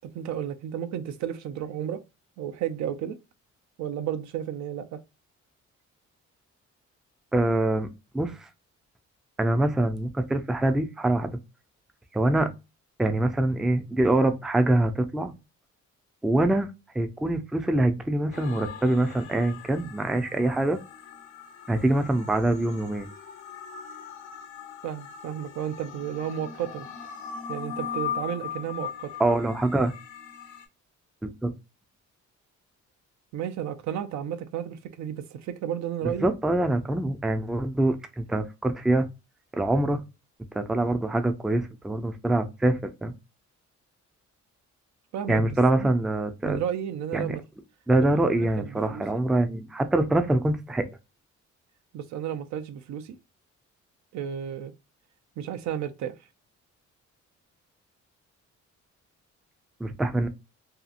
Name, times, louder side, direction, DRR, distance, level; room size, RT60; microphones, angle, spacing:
voice 1, 0.0-2.0 2.4-3.2 3.8-5.0 24.8-26.9 27.5-29.2 33.3-36.3 45.1-45.9 46.4-47.4 48.0-49.2 51.9-53.2 54.1-54.7 55.4-56.2, right 9 dB, 65° right, 0.5 m, -33 dB
voice 2, 7.3-7.9 8.1-8.5 9.4-11.4 12.1-12.5 13.0-15.3 16.2-16.7 16.9-20.8 21.7-23.1 29.2-29.9 31.2-31.5 36.0-39.1 39.5-40.0 40.5-43.1 45.3-46.6 47.1-47.4 47.9-50.9 59.8-60.3, right 1 dB, ahead, 0.3 m, -24 dB
sound 1, 18.3-30.7, left 8 dB, 85° left, 0.8 m, -40 dB
2.7 x 2.4 x 2.4 m
cardioid pair, 90°, 30 cm